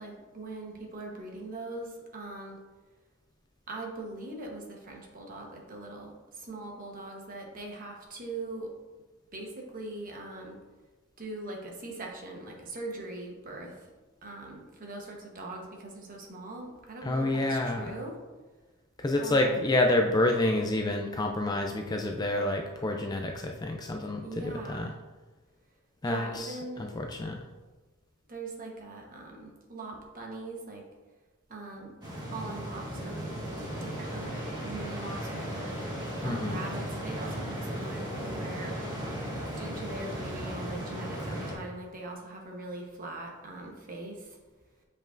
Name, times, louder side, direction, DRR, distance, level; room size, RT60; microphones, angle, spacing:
voice 1, 0.0-2.6 3.7-6.1 6.4-8.7 9.3-10.6 11.2-13.7 14.2-18.2 19.2-19.7 24.2-24.9 26.0-27.0 28.3-30.8 31.5-31.9 32.2-33.3 33.8-35.7 36.2-38.7 39.6-44.3, right 2 dB, 40° right, 0 dB, 1.1 m, -41 dB
voice 2, 17.0-17.9 19.0-24.9 26.0-27.4 36.2-36.6, left 1 dB, 20° left, 3 dB, 0.3 m, -28 dB
sound 1, 32.0-41.5, equal, 20° right, 1.4 m, -36 dB
7.4 x 5.2 x 2.5 m, 1.2 s
head